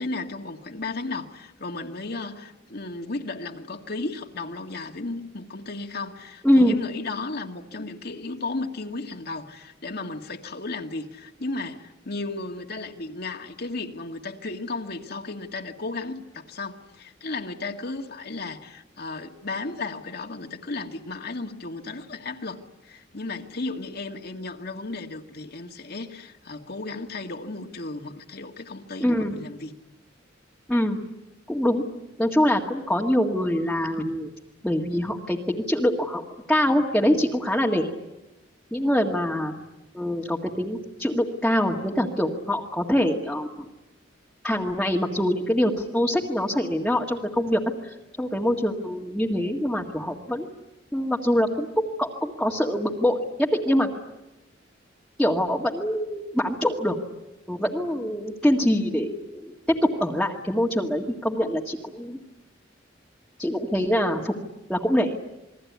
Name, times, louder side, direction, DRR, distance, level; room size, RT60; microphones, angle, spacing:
voice 1, 0.0-29.7, left 3 dB, 55° left, 4 dB, 2.0 m, -34 dB
voice 2, 6.4-6.8 29.0-29.4 30.7-31.0 31.5-31.8 32.2-34.3 34.6-36.2 36.5-37.9 38.7-39.5 39.9-43.7 44.4-50.5 50.9-53.9 55.2-57.0 57.5-62.2 63.4-64.3 64.7-65.2, equal, 5° left, -2 dB, 1.9 m, -24 dB
28.5 x 21.5 x 9.6 m, 1.0 s
head